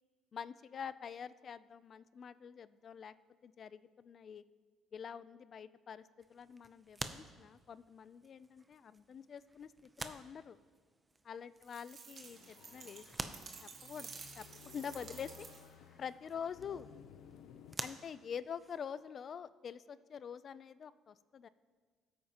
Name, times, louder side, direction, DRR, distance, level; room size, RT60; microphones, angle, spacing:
voice 1, 0.3-3.1 3.4-4.4 4.9-6.0 6.3-10.6 11.2-15.5 16.0-16.9 17.8-21.5, left 7 dB, 40° left, 16 dB, 0.4 m, -46 dB
sound 1, 6.2-19.1, right 2 dB, 15° right, 0.6 m, -50 dB
sound 2, 11.6-15.8, right 5 dB, 45° right, 1.1 m, -52 dB
sound 3, 12.2-17.8, left 8 dB, 80° left, 0.6 m, -57 dB
19.5 x 8.6 x 2.9 m, 1.5 s
cardioid pair, 130°, 0 cm